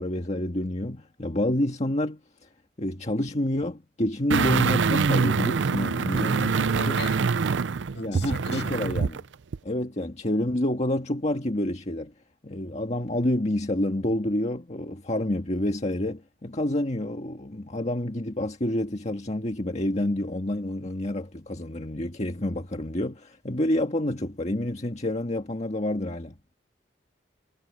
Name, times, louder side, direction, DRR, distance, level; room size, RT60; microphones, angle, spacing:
voice 1, 0.0-2.5 2.8-7.0 8.0-9.2 9.6-12.1 12.4-26.3, left 1 dB, 40° left, 1.7 m, -28 dB
sound 1, 4.3-9.2 9.5-9.6, right 5 dB, 85° right, 0.5 m, -24 dB
voice 2, 6.1-7.5 8.0-8.8, left 4 dB, 70° left, 6.9 m, -41 dB
head